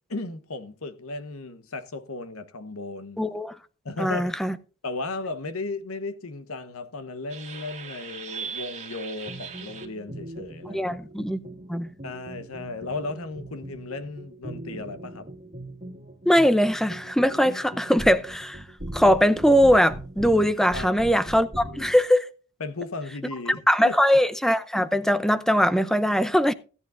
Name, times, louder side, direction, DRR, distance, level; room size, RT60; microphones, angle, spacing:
voice 1, 0.1-3.2 3.8-4.3 4.8-11.0 12.0-15.3 20.7-21.1 22.6-24.0, left 3 dB, 80° left, 1.1 m, -35 dB
voice 2, 3.2-3.5 4.0-4.5 10.7-11.4 11.7-11.9 16.3-18.6 18.9-22.3 23.7-26.5, equal, ahead, 0.6 m, -21 dB
sound 1, 7.3-22.0, right 2 dB, 30° right, 1.9 m, -39 dB
16.5 x 9.8 x 2.5 m
head